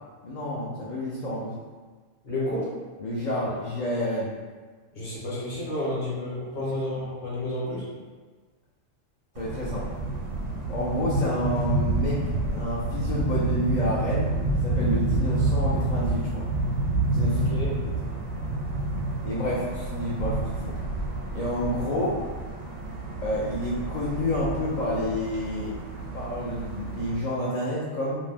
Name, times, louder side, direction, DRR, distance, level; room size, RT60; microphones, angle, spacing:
voice 1, 0.2-1.6 3.0-4.3 6.6-7.0 9.4-9.9 10.7-16.5 17.1-17.5 19.2-20.7 21.3-22.2 23.2-25.7 26.1-28.1, left 1 dB, 70° left, -7 dB, 0.4 m, -29 dB
voice 2, 2.2-2.7 4.9-7.8 17.3-17.7, left 1 dB, 45° left, -7 dB, 0.9 m, -31 dB
sound 1, 9.4-27.2, right 2 dB, 85° right, 1.0 m, -28 dB
2.5 x 2.1 x 3.3 m, 1.4 s
omnidirectional pair, 1.3 m